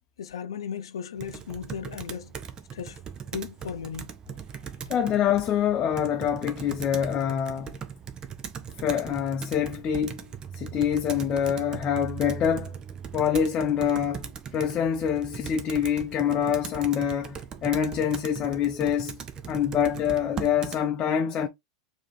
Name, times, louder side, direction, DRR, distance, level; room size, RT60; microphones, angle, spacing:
voice 1, 0.2-2.3 2.7-3.0 3.3-4.1, left 7 dB, 85° left, 0.6 m, -36 dB
Computer keyboard, 1.2-20.8, right 7 dB, 30° right, 0.8 m, -39 dB
voice 2, 4.9-7.8 8.8-10.3 10.5-12.8 13.1-19.2 19.5-21.5, left 8 dB, 35° left, 0.7 m, -26 dB
4.7 x 3.0 x 3.2 m
hypercardioid pair, 100°, 3 cm